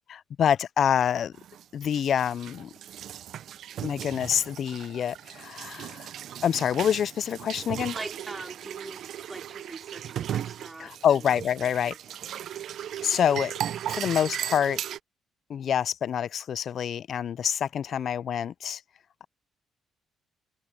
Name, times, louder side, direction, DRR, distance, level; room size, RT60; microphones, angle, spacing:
voice 1, 0.1-1.3 1.7-2.7 3.8-6.1 6.4-7.9 10.8-11.9 13.0-13.5 13.9-14.8 15.5-18.8, left 9 dB, 55° left, 0.3 m, -26 dB
sound 1, 1.3-15.0, right 10 dB, 65° right, 0.5 m, -37 dB
voice 2, 7.9-12.0, right 2 dB, 15° right, 4.7 m, -43 dB
cardioid pair, 125°, 0 cm